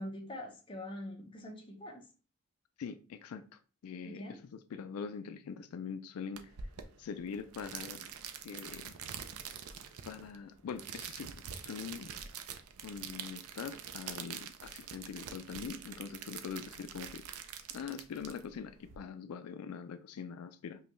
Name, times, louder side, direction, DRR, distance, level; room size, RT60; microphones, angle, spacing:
voice 1, 0.0-2.1 4.0-4.4, left 1 dB, 25° left, 0.7 m, -43 dB
voice 2, 2.8-6.5 7.0-8.1 8.4-8.9 10.1-12.1 12.8-17.2 17.7-20.8, left 6 dB, 85° left, 0.3 m, -43 dB
sound 1, 6.4-19.0, right 7 dB, 85° right, 0.5 m, -45 dB
5.2 x 2.3 x 3.0 m
head